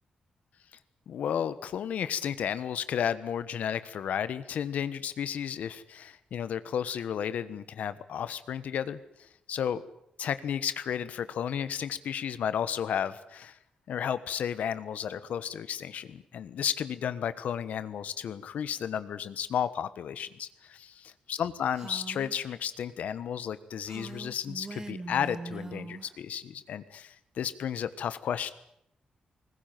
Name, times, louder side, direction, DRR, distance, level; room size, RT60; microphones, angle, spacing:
voice 1, 1.1-9.8 10.2-13.6 13.9-28.5, left 8 dB, 80° left, 13 dB, 1.3 m, -33 dB
Female speech woman speaking, 21.7-22.4 23.8-26.1, right 3 dB, 25° right, 1.1 m, -41 dB
20.5 x 20.0 x 9.3 m, 0.76 s
wide cardioid pair, 145°, 2 cm